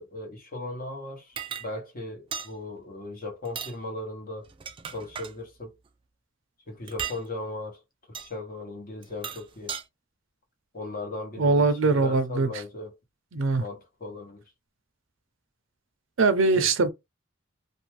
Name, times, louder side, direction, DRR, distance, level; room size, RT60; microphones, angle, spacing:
voice 1, 0.0-4.5 4.9-5.7 6.7-7.8 8.2-9.7 10.7-12.9 13.6-14.4 16.5-16.7, left 2 dB, 45° left, 1.0 m, -37 dB
sound 1, 1.4-1.7 2.3-2.5 3.4-3.8 4.4-5.3 6.9-7.2 8.1-8.3 9.0-9.8, right 7 dB, 25° right, 0.3 m, -36 dB
voice 2, 11.4-12.5 13.3-13.6 16.2-16.9, right 3 dB, 70° right, 0.6 m, -22 dB
2.6 x 2.2 x 3.1 m
head